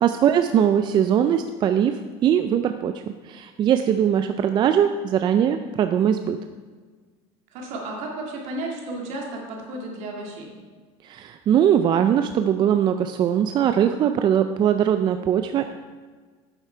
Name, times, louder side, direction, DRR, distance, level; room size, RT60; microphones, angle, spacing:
voice 1, 0.0-6.4 11.0-15.7, right 9 dB, 35° right, 8 dB, 0.4 m, -21 dB
voice 2, 7.5-10.5, right 2 dB, 65° right, 0 dB, 2.2 m, -33 dB
8.8 x 7.2 x 4.5 m, 1.5 s
supercardioid pair, 120°, 13 cm